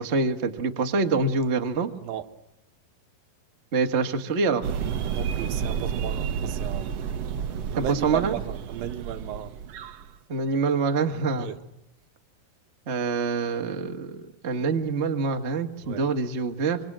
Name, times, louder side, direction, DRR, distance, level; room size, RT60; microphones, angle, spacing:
voice 1, 0.0-1.9 3.7-4.7 7.8-8.3 10.3-11.5 12.9-16.8, right 4 dB, 45° right, 0.8 m, -25 dB
sound 1, 4.6-10.1, right 7 dB, 60° right, 1.8 m, -31 dB
voice 2, 5.1-6.9 7.7-9.5 11.3-11.6 15.8-16.0, right 11 dB, 80° right, 2.9 m, -34 dB
25.5 x 25.0 x 7.5 m
omnidirectional pair, 4.0 m